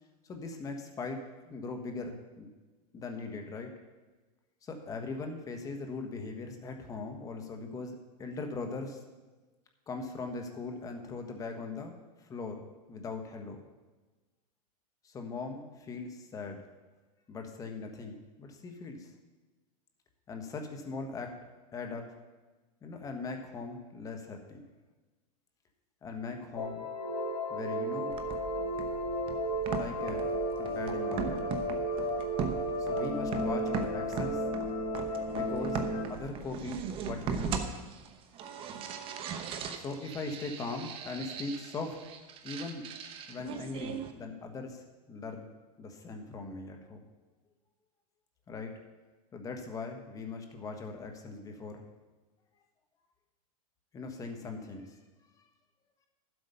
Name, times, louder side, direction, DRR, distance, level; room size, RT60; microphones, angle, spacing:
voice 1, 0.2-2.5 2.9-3.7 4.6-9.0 9.9-13.6 15.0-16.6 17.3-19.1 20.3-21.4 21.7-22.1 22.8-24.6 26.0-26.9 27.5-28.2 29.7-30.3 30.6-31.5 32.8-34.4 35.3-35.8 36.1-37.6 39.7-42.1 42.4-42.9 43.3-45.5 45.8-47.0 48.5-48.8 49.3-51.8 53.9-55.0 55.4-55.5, left 3 dB, 15° left, 4 dB, 1.2 m, -40 dB
sound 1, 26.6-36.0, equal, 80° left, 3.1 m, -33 dB
sound 2, 28.1-44.1, right 6 dB, 25° right, 0.8 m, -39 dB
11.5 x 8.0 x 5.5 m, 1.2 s
supercardioid pair, 150°, 20 cm